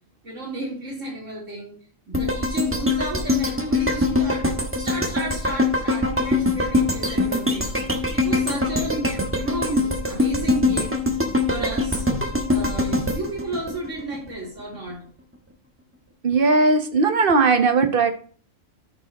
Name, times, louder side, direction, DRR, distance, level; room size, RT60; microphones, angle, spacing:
voice 1, 0.2-1.8 2.1-7.7 8.1-11.0 11.5-12.1 12.5-15.0, right 2 dB, 75° right, -3 dB, 4.1 m, -32 dB
sound 1, 2.1-14.3 14.7-14.8, left 2 dB, 10° right, 1.1 m, -23 dB
voice 2, 16.2-18.1, right 4 dB, 45° right, 7 dB, 1.3 m, -18 dB
13.5 x 5.4 x 3.0 m, 0.43 s
omnidirectional pair, 1.3 m